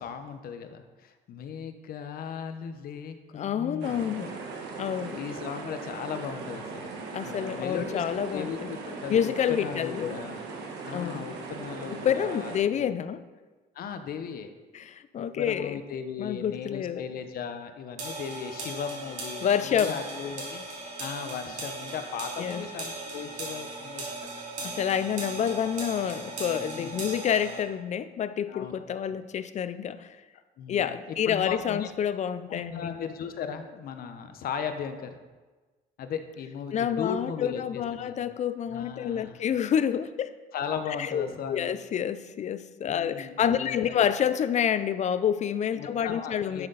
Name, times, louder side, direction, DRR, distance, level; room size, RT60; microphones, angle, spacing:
voice 1, 0.0-4.4 5.1-6.9 7.2-10.4 10.8-12.5 12.8-12.9 13.7-14.5 15.2-20.6 21.0-24.3 26.7-27.0 28.5-28.7 30.6-31.9 32.5-35.2 36.0-38.2 38.7-39.4 40.5-41.7 42.9-44.1 45.7-46.7, left 7 dB, 60° left, 8 dB, 1.0 m, -37 dB
voice 2, 3.3-4.3 4.8-5.2 7.1-8.8 9.1-10.2 10.9-11.3 11.9-13.2 14.7-15.8 16.2-17.0 19.4-20.0 22.4-22.6 24.6-30.2 30.7-32.9 36.7-40.3 41.0-46.7, left 9 dB, 45° left, 13 dB, 0.5 m, -28 dB
sound 1, 3.8-12.6, right 4 dB, 80° right, 1.5 m, -39 dB
sound 2, 18.0-27.6, right 2 dB, 45° right, 3.0 m, -38 dB
11.5 x 6.7 x 4.0 m, 1.3 s
cardioid pair, 110°, 17 cm